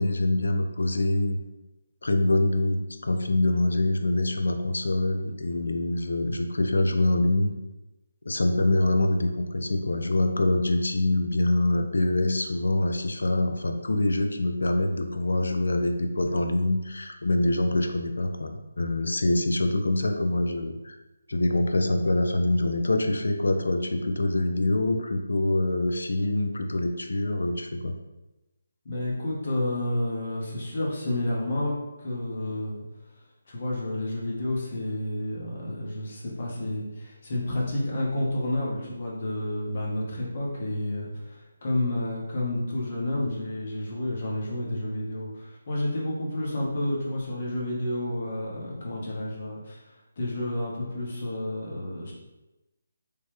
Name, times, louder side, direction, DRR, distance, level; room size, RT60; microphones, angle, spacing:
voice 1, 0.0-1.4 2.0-7.5 8.3-21.0 21.3-27.9, left 1 dB, 80° left, 5 dB, 0.3 m, -25 dB
voice 2, 28.8-32.8 33.5-49.8 50.2-52.1, left 1 dB, 50° left, -4 dB, 0.9 m, -30 dB
3.1 x 2.1 x 3.0 m, 1.0 s
figure-of-eight pair, 155°, 0 cm